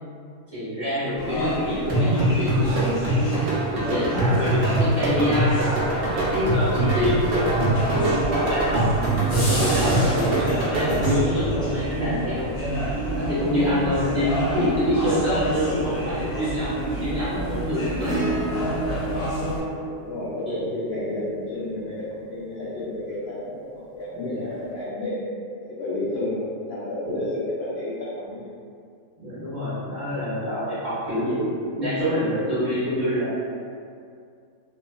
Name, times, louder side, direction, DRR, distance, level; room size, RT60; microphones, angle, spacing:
voice 1, 0.5-8.9 9.3-12.5 13.1-18.3 19.0-19.2 20.4-20.6 24.2-24.4 27.0-27.2 29.2-31.5 31.8-33.3, equal, 30° right, -14 dB, 1.2 m, -26 dB
sound 1, 1.2-19.6, equal, 40° left, 1.0 m, -28 dB
sound 2, 1.9-11.4, right 1 dB, 85° right, 0.5 m, -23 dB
Acoustic guitar / Strum, 18.0-22.6 24.5-24.6, right 2 dB, 15° left, 0.6 m, -33 dB
voice 2, 19.9-25.3 25.6-28.5, left 1 dB, 65° left, -10 dB, 0.6 m, -31 dB
2.7 x 2.4 x 2.3 m, 2.3 s
omnidirectional pair, 1.7 m